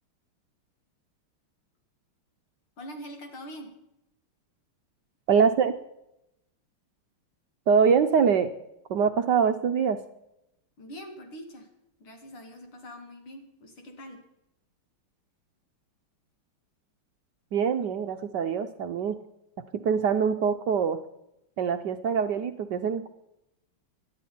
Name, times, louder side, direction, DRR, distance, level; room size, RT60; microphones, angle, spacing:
voice 1, 2.8-3.7 10.8-11.7 12.0-14.2, equal, 70° left, 4 dB, 3.2 m, -43 dB
voice 2, 5.3-5.8 7.7-8.5 8.9-10.0 17.5-19.2 19.7-21.0 21.6-23.1, right 6 dB, 65° right, 7 dB, 1.1 m, -24 dB
19.0 x 12.0 x 4.3 m, 0.85 s
omnidirectional pair, 2.4 m